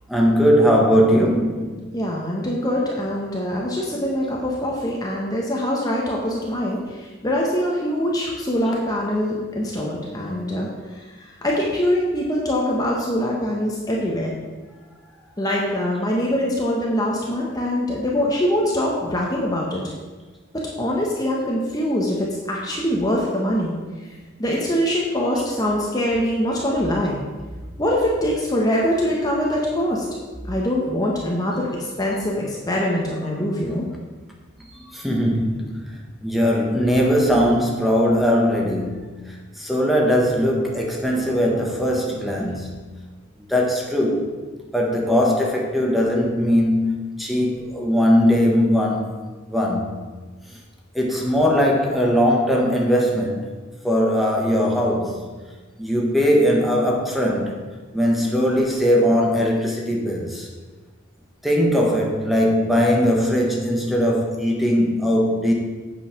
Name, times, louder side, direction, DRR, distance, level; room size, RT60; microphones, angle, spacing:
voice 1, 0.1-1.8 34.9-35.8 36.2-42.7 43.5-44.3 44.7-49.9 50.9-53.5 53.8-55.2 55.8-57.5 57.9-60.5 61.4-65.5, equal, ahead, -1 dB, 1.2 m, -20 dB
voice 2, 1.9-14.3 15.4-19.8 20.8-23.8 24.0-24.1 24.4-27.2 27.8-30.1 30.4-33.8 42.4-42.7, equal, 20° left, -3 dB, 1.0 m, -23 dB
8.4 x 5.6 x 5.8 m, 1.3 s
head